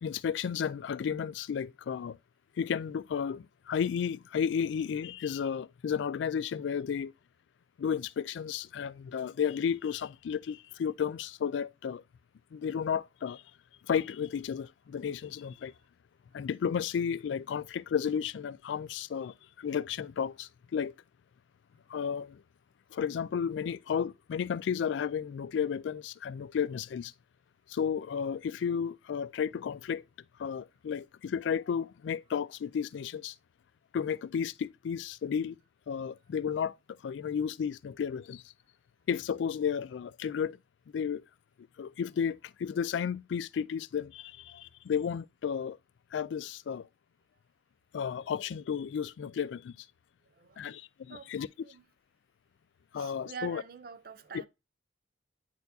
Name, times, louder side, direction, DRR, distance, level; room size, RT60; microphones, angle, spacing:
voice 1, 0.0-2.2 2.6-7.1 7.8-12.0 12.5-13.4 13.9-15.7 16.3-20.9 21.9-22.4 22.9-27.1 27.7-30.0 30.4-33.3 33.9-35.6 35.9-36.7 37.0-38.4 39.1-40.6 40.9-41.2 41.8-45.8 46.1-46.9 47.9-49.8 50.6-51.5 52.9-53.6, left 7 dB, 75° left, 0.3 m, -33 dB
voice 2, 50.2-50.7 51.1-51.9 52.9-54.5, right 6 dB, 50° right, 0.5 m, -46 dB
9.3 x 4.4 x 2.7 m
head